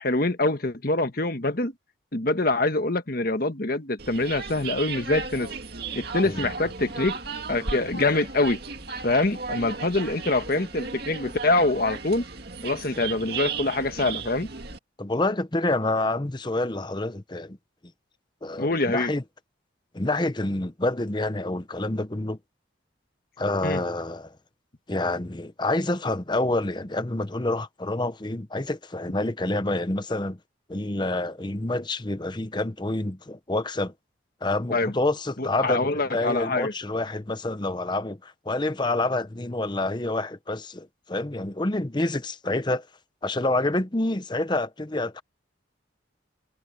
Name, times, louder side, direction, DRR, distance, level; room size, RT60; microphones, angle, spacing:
voice 1, 0.0-1.7 2.1-5.5 5.9-7.2 7.5-8.6 9.0-12.2 12.6-14.5 18.6-19.1 23.6-23.8 34.7-34.9 35.4-36.7, left 2 dB, 50° left, 1.4 m, -25 dB
sound 1, 4.0-14.8, right 4 dB, 55° right, 2.3 m, -35 dB
voice 2, 15.0-17.6 18.4-19.2 19.9-22.4 23.4-24.3 24.9-30.4 30.7-33.9 34.4-42.9 43.2-45.2, left 2 dB, 25° left, 0.8 m, -27 dB
head